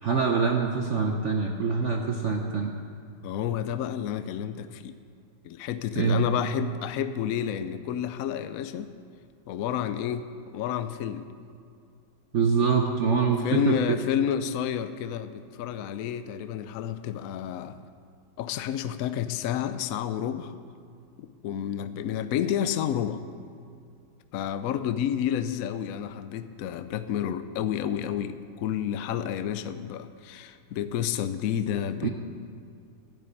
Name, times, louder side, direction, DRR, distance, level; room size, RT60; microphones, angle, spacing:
voice 1, 0.0-2.7 6.0-6.3 12.3-14.0 32.0-32.1, right 5 dB, 70° right, 2 dB, 0.7 m, -25 dB
voice 2, 3.2-4.9 5.4-8.9 9.5-10.3 10.5-11.3 13.4-17.8 18.4-20.5 21.2-23.2 24.3-32.1, left 9 dB, 80° left, 11 dB, 0.7 m, -30 dB
12.0 x 6.9 x 9.8 m, 2.4 s
omnidirectional pair, 2.2 m